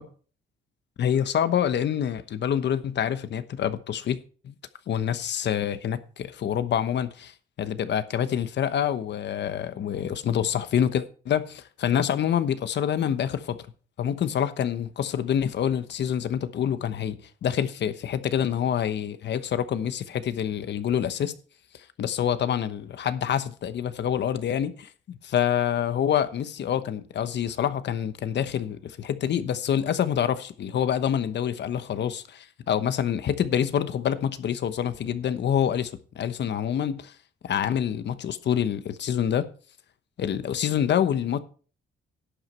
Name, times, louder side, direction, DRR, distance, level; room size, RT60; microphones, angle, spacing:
voice 1, 1.0-4.2 4.4-4.5 4.9-13.6 14.0-21.3 22.0-37.1 37.4-39.5 40.2-41.4, left 9 dB, 60° left, 1.1 m, -26 dB
11.5 x 8.1 x 4.4 m
cardioid pair, 90°, 20 cm